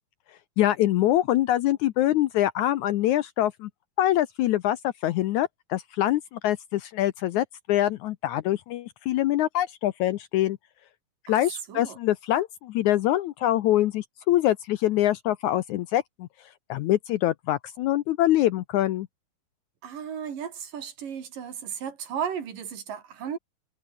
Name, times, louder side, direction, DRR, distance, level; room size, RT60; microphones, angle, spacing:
voice 1, 0.6-3.7 4.0-10.6 11.3-16.3 16.7-19.1, left 13 dB, 75° left, 1.9 m, -24 dB
voice 2, 19.8-23.4, right 8 dB, 70° right, 4.4 m, -35 dB
omnidirectional pair, 4.1 m